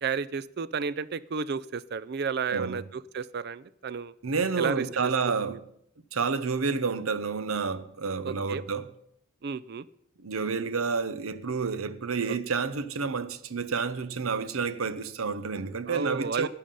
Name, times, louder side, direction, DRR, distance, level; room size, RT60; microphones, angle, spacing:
voice 1, 0.0-4.1 4.6-5.1 5.5-5.6 8.2-8.6 9.4-9.9 15.9-16.5, right 5 dB, 50° right, 0.4 m, -32 dB
voice 2, 2.5-2.8 4.2-5.6 6.1-8.9 10.2-16.5, right 5 dB, 80° right, 0.8 m, -29 dB
12.5 x 10.0 x 5.4 m
head